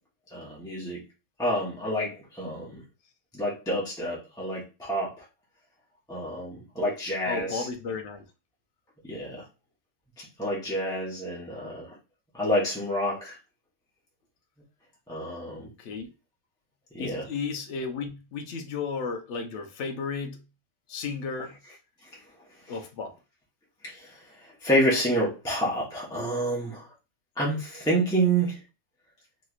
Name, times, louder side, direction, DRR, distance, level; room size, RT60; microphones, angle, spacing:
voice 1, 0.3-1.0 1.4-2.8 3.3-5.2 6.1-7.7 9.0-9.4 10.2-11.9 12.3-13.4 15.1-15.7 16.9-17.3 23.8-26.9 27.4-28.6, right 1 dB, 5° left, 0.8 m, -28 dB
voice 2, 7.3-8.2 15.8-16.1 17.0-20.4 20.9-21.6 22.7-23.2, left 5 dB, 60° left, 0.8 m, -34 dB
3.2 x 2.8 x 2.4 m
omnidirectional pair, 1.5 m